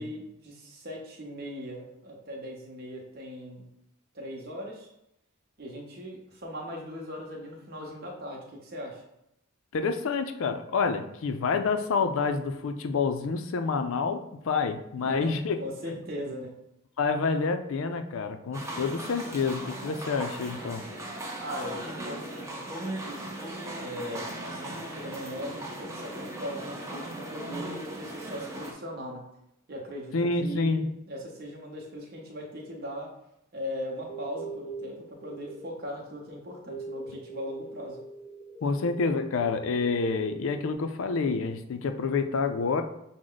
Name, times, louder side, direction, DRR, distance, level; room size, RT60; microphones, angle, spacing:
voice 1, 0.0-3.7 4.1-4.9 5.6-9.0 15.0-15.3 15.6-16.5 21.4-23.3 23.7-29.2 29.7-30.1 30.4-33.1 33.5-38.0 38.6-38.8, equal, 45° right, -1 dB, 0.9 m, -39 dB
voice 2, 9.7-15.6 17.0-20.9 30.1-30.9 38.6-42.8, left 4 dB, 65° left, 7 dB, 0.4 m, -28 dB
sound 1, 18.5-28.7, right 1 dB, 15° right, 0.6 m, -38 dB
sound 2, 34.1-40.7, right 3 dB, 25° left, 0.7 m, -42 dB
6.2 x 2.1 x 3.8 m, 0.81 s
head